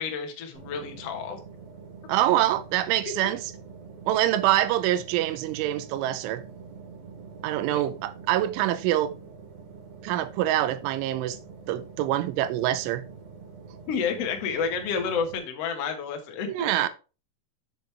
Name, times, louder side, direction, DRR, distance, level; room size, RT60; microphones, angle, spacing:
voice 1, 0.0-1.4 7.7-7.8 13.9-16.7, left 6 dB, 80° left, 1.4 m, -30 dB
sound 1, 0.5-15.4, right 5 dB, 60° right, 3.3 m, -45 dB
voice 2, 2.1-3.5 4.1-6.4 7.4-9.2 10.0-11.4 11.7-13.1 16.5-16.9, right 13 dB, 90° right, 3.2 m, -25 dB
7.7 x 7.3 x 3.4 m
omnidirectional pair, 5.4 m